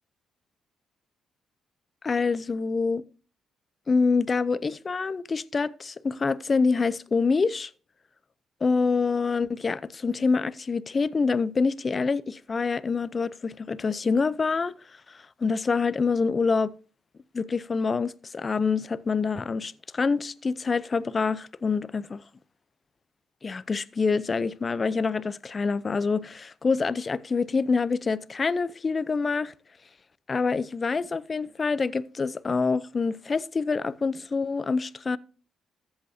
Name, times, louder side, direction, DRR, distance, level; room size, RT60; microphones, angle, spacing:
voice 1, 2.0-3.0 3.9-7.7 8.6-14.7 15.1-16.7 17.3-22.2 23.4-29.5 30.3-35.2, left 4 dB, 35° left, 0.6 m, -26 dB
14.5 x 8.0 x 2.8 m
cardioid pair, 90°, 0 cm